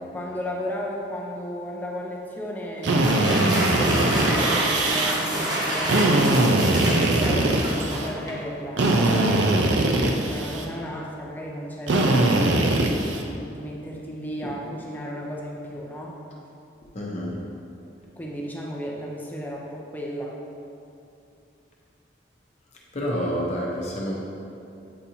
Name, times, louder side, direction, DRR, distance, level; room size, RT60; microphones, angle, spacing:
voice 1, 0.1-3.3 3.7-16.2 18.2-20.4, equal, 10° left, -2 dB, 0.5 m, -34 dB
Drill, 2.8-5.1 5.8-8.1 8.8-10.7 11.9-13.2, right 2 dB, 75° right, 0.5 m, -21 dB
sound 1, 2.9-8.5, right 1 dB, 20° right, 0.8 m, -27 dB
voice 2, 16.9-17.4 22.9-24.1, equal, 40° left, -4 dB, 0.8 m, -29 dB
8.4 x 4.2 x 2.7 m, 2.7 s
head